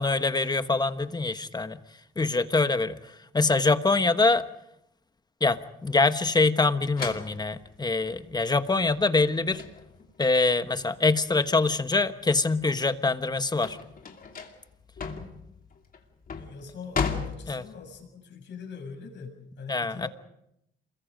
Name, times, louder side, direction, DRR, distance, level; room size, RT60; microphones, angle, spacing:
voice 1, 0.0-1.8 2.2-4.5 5.4-9.6 10.2-13.8 17.5-17.6 19.7-20.1, left 3 dB, 20° left, 11 dB, 1.2 m, -24 dB
sound 1, 7.0-12.0 12.4-18.0, left 5 dB, 45° left, 2.7 m, -36 dB
voice 2, 16.3-20.1, left 5 dB, 65° left, 3 dB, 6.6 m, -43 dB
27.5 x 22.0 x 5.2 m, 0.79 s
cardioid pair, 90°, 20 cm